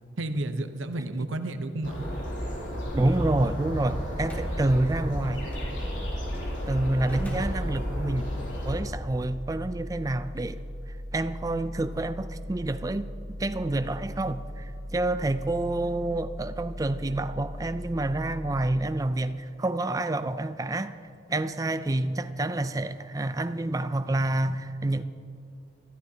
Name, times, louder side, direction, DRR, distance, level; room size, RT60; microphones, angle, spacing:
voice 1, 0.2-2.1, right 2 dB, 90° right, 0.8 m, -31 dB
sound 1, 1.8-8.8, equal, 75° left, 3.2 m, -33 dB
voice 2, 2.9-5.4 6.7-8.3 8.6-10.6 11.1-13.1 13.4-21.0 21.3-25.0, right 2 dB, 20° right, 0.3 m, -28 dB
sound 2, 3.6-19.3, equal, 40° right, 3.3 m, -39 dB
Slam, 4.2-4.5 5.5-5.7 7.0-8.3, equal, 10° left, 1.7 m, -38 dB
20.0 x 13.5 x 2.8 m
head